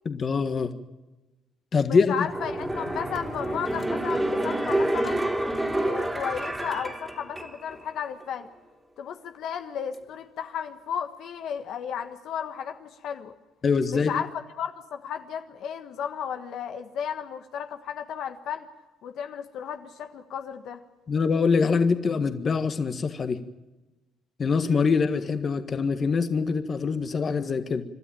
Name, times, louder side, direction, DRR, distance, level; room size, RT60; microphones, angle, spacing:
voice 1, 0.0-0.7 1.7-2.3 13.6-14.1 21.1-23.4 24.4-27.8, left 5 dB, 40° left, 9 dB, 1.6 m, -24 dB
voice 2, 1.8-5.2 5.8-8.5 9.0-13.3 13.9-14.3 14.6-18.7 19.0-20.8, left 8 dB, 70° left, 7 dB, 1.5 m, -34 dB
sound 1, 2.3-7.8 8.2-8.3, right 1 dB, 10° right, 2.9 m, -28 dB
27.5 x 12.5 x 9.1 m, 1.1 s
cardioid pair, 100°, 0 cm